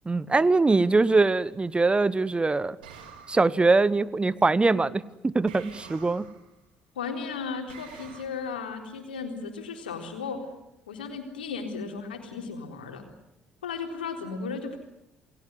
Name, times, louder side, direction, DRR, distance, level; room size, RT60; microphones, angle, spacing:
voice 1, 0.0-2.8 3.3-6.3, right 3 dB, 20° right, 19 dB, 1.1 m, -22 dB
sound 1, 2.8-3.7 5.5-6.5 7.7-8.3, right 7 dB, 75° right, 3.7 m, -47 dB
voice 2, 7.0-10.4 10.9-13.0 13.6-14.8, left 5 dB, 75° left, 4 dB, 3.9 m, -35 dB
28.5 x 20.0 x 9.5 m, 0.87 s
figure-of-eight pair, 45°, 5 cm